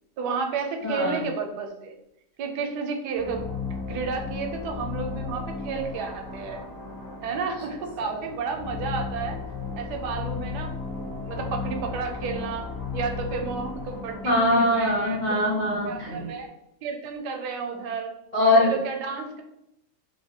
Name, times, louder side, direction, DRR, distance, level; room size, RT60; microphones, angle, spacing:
voice 1, 0.2-1.9 2.4-3.4 3.9-6.6 7.2-9.4 9.7-10.7 11.0-12.7 12.9-15.2 15.9-16.5 16.8-18.1 18.5-19.4, right 5 dB, 75° right, 3 dB, 1.1 m, -31 dB
voice 2, 0.8-1.2 8.1-8.2 14.2-16.3 18.3-18.7, left 1 dB, 90° left, -5 dB, 0.4 m, -22 dB
sound 1, 3.1-16.5, left 4 dB, 70° left, 1.3 m, -35 dB
3.1 x 2.7 x 2.7 m, 0.83 s
omnidirectional pair, 1.9 m